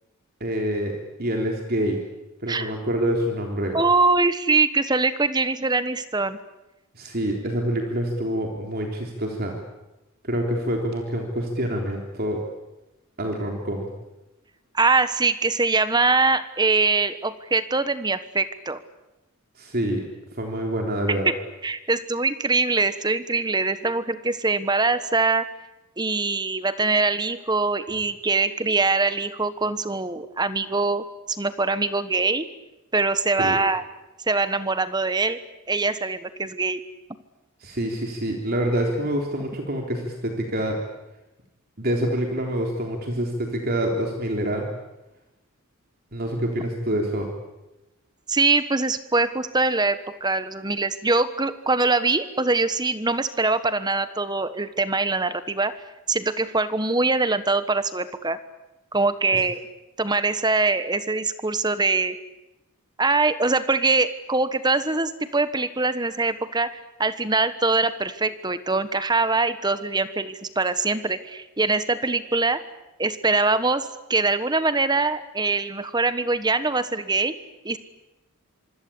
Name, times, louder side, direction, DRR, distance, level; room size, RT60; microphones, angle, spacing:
voice 1, 0.4-2.0 2.4-3.8 6.9-9.6 10.2-12.4 13.2-13.9 19.6-20.0 20.4-21.3 33.4-33.6 37.6-40.8 41.8-44.7 46.1-47.3 59.3-59.4, right 1 dB, 45° right, 2 dB, 3.6 m, -26 dB
voice 2, 3.7-6.4 14.7-18.8 21.1-21.3 21.6-25.4 26.0-32.5 32.9-33.8 34.3-35.4 35.7-36.8 48.3-55.7 56.1-58.4 58.9-59.6 60.0-62.2 63.0-66.7 67.0-72.6 73.0-77.3 77.6-77.8, right 3 dB, 20° right, 12 dB, 1.3 m, -23 dB
26.0 x 25.0 x 8.6 m, 0.97 s
head